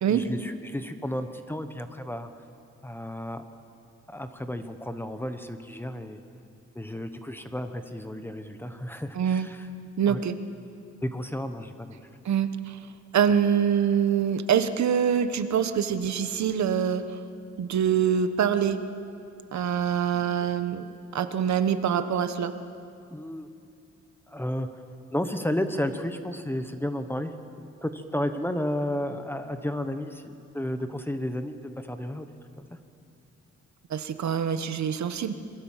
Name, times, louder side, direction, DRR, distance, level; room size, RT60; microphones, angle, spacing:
voice 1, 0.1-2.3 2.8-3.4 4.1-6.2 6.7-9.7 10.1-10.2 11.0-12.0 20.1-20.5 23.1-23.5 24.3-24.7 25.1-27.3 27.6-32.3 32.6-32.7, left 1 dB, 5° left, 8 dB, 1.0 m, -32 dB
voice 2, 9.1-9.5 10.0-10.4 12.2-12.5 13.1-17.0 17.6-18.8 19.5-20.8 21.1-22.5 33.9-35.3, right 8 dB, 70° right, 10 dB, 1.3 m, -24 dB
26.5 x 23.0 x 7.4 m, 2.6 s
wide cardioid pair, 175°, 29 cm